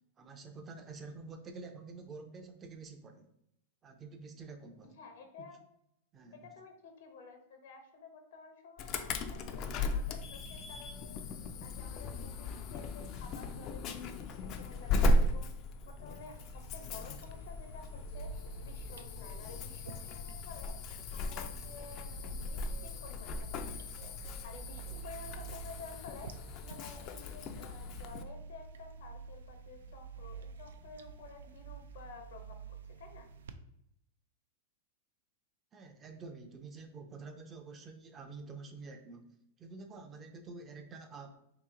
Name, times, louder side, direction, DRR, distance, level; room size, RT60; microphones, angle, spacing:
voice 1, 0.2-3.3 3.8-4.9 5.4-5.5 6.1-6.5 35.7-39.2 39.6-41.4, right 4 dB, 25° right, 5 dB, 0.5 m, -48 dB
voice 2, 4.8-5.6 6.3-11.2 11.6-33.3, left 4 dB, 75° left, 4 dB, 0.9 m, -52 dB
Insect / Alarm, 8.8-28.2, left 1 dB, 40° left, 0.4 m, -37 dB
sound 1, 16.2-33.5, right 5 dB, 90° right, 0.3 m, -49 dB
2.9 x 2.9 x 3.6 m, 0.76 s
hypercardioid pair, 135°, 0 cm